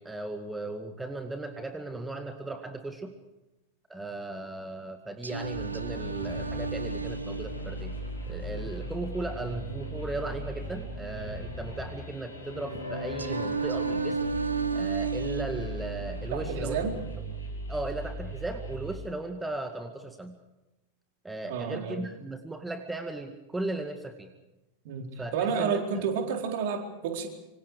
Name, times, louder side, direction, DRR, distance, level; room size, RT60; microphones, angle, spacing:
voice 1, 0.0-3.1 3.9-7.9 8.3-14.2 14.7-16.8 17.7-20.4 21.2-24.3 25.2-26.1, right 2 dB, 10° right, 7 dB, 2.1 m, -37 dB
Singing, 5.2-9.2 13.2-17.2, right 5 dB, 80° right, 1.1 m, -34 dB
sound 1, 5.4-18.9, equal, 80° left, 6.6 m, -38 dB
voice 2, 16.3-16.9 21.4-22.0 24.8-27.3, right 6 dB, 50° right, 4 dB, 4.3 m, -30 dB
26.5 x 25.5 x 4.9 m, 0.98 s
figure-of-eight pair, 90°, 0 cm